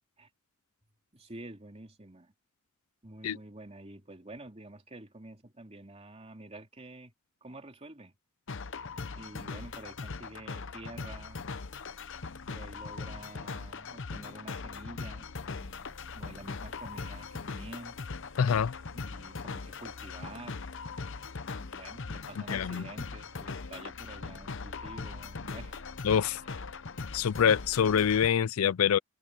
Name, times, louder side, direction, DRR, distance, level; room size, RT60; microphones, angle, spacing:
voice 1, 1.1-2.3 3.0-7.1 7.4-8.1 9.1-11.5 12.5-18.0 18.9-20.5 21.6-25.8, right 2 dB, 30° right, 2.8 m, -48 dB
sound 1, 8.5-28.3, left 4 dB, 60° left, 0.8 m, -40 dB
sound 2, 15.8-26.3, right 3 dB, 80° right, 2.9 m, -64 dB
voice 2, 18.4-18.7 22.5-22.8 26.0-26.4 27.1-29.0, left 8 dB, 85° left, 0.4 m, -25 dB
head